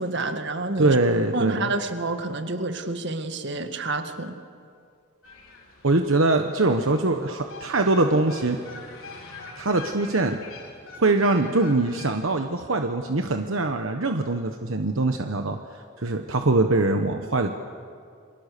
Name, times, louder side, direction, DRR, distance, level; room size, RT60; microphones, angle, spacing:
voice 1, 0.0-1.0 1.3-4.4, right 2 dB, 55° right, 7 dB, 1.8 m, -28 dB
voice 2, 0.8-1.7 5.8-8.6 9.6-10.4 11.0-17.5, right 2 dB, 75° right, 6 dB, 1.1 m, -23 dB
sound 1, 5.2-12.3, left 4 dB, 80° left, 4.8 m, -44 dB
29.0 x 24.5 x 6.8 m, 2.3 s
head